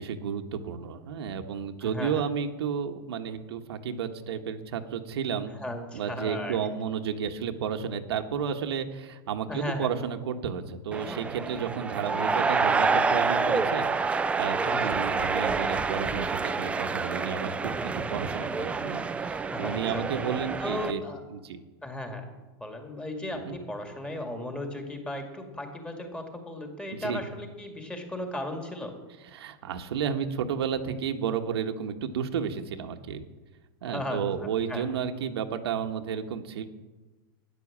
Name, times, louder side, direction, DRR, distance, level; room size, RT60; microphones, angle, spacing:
voice 1, 0.0-5.5 5.9-21.0 21.3-21.6 23.4-23.6 27.0-27.2 29.3-33.2 33.8-36.6, right 7 dB, 85° right, 5 dB, 1.4 m, -32 dB
voice 2, 1.8-2.2 5.6-6.6 9.5-9.9 14.6-15.0 19.5-20.0 20.6-21.2 21.8-22.3 22.6-29.0 33.8-34.8, left 1 dB, 5° left, 3 dB, 2.2 m, -36 dB
sound 1, 10.9-20.9, right 4 dB, 10° right, 0.5 m, -28 dB
12.5 x 10.5 x 7.4 m, 1.2 s
supercardioid pair, 150°, 13 cm